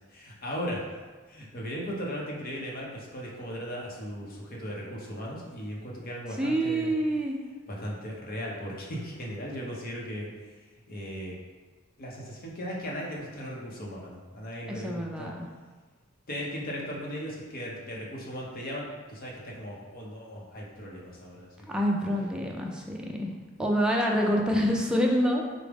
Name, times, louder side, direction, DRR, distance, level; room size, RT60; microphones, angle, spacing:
voice 1, 0.1-0.9 1.3-6.9 7.7-10.3 10.9-11.4 12.0-15.3 16.3-21.8, equal, 45° left, -3 dB, 0.7 m, -37 dB
voice 2, 6.4-7.4 14.7-15.5 21.7-23.3 23.6-25.4, equal, 5° right, -1 dB, 0.3 m, -27 dB
4.7 x 2.0 x 3.4 m, 1.4 s
head